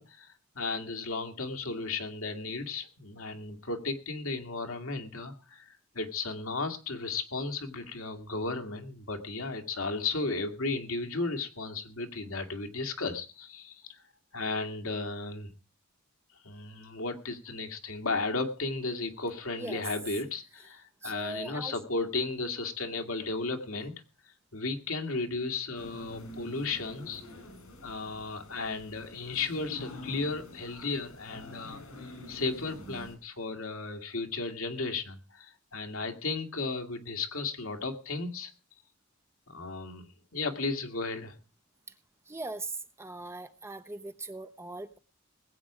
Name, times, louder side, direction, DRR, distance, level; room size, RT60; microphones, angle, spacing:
voice 1, 0.0-14.0 14.3-15.5 16.4-23.9 24.5-27.2 27.8-31.8 32.3-38.5 39.5-40.1 40.3-41.4, left 3 dB, 70° left, 5 dB, 2.0 m, -34 dB
voice 2, 21.0-21.8 42.3-42.7 43.0-45.0, right 2 dB, 10° right, 10 dB, 0.7 m, -40 dB
sound 1, 25.7-33.1, left 1 dB, 85° left, 5.2 m, -46 dB
20.0 x 8.4 x 4.9 m, 0.34 s
head